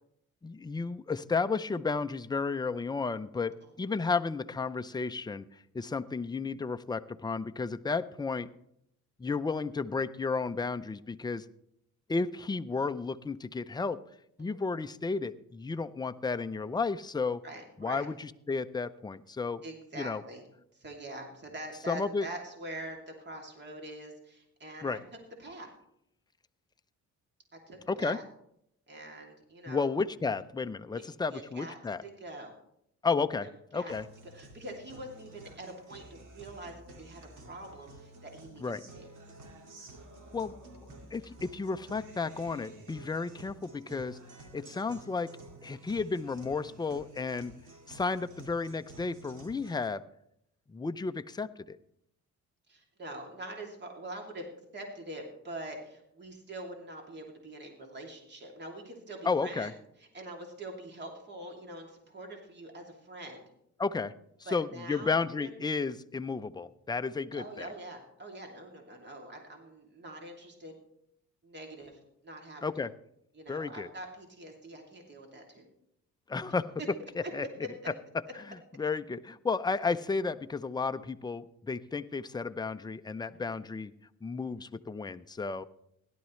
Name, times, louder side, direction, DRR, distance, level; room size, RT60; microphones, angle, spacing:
voice 1, 0.4-5.4 5.7-8.5 9.2-11.5 12.1-14.0 14.4-17.4 17.8-19.6 20.0-20.2 21.9-22.3 24.8-25.0 27.9-28.2 29.7-32.0 33.0-34.1 38.6-38.9 40.3-40.5 41.1-44.2 44.5-45.3 45.6-47.5 47.9-50.0 50.7-51.8 59.2-59.7 63.8-64.1 64.5-67.7 72.6-72.9 73.5-73.9 76.3-76.7 77.3-77.5 78.8-83.9 84.2-85.7, left 4 dB, 15° left, 10 dB, 0.5 m, -32 dB
voice 2, 17.4-18.1 19.6-20.4 20.7-25.0 25.4-25.7 27.5-28.2 28.9-29.9 30.9-31.0 31.3-32.5 33.4-33.9 34.3-39.1 52.7-54.5 54.7-59.7 60.1-63.4 64.4-65.5 67.3-70.7 71.4-72.6 73.3-75.7 77.2-77.3 77.6-77.7 83.3-83.6, right 1 dB, 35° right, 2 dB, 2.7 m, -44 dB
Guitar, 33.9-49.9, right 2 dB, 85° right, 2.3 m, -51 dB
17.0 x 11.5 x 3.2 m, 0.75 s
cardioid pair, 90°, 30 cm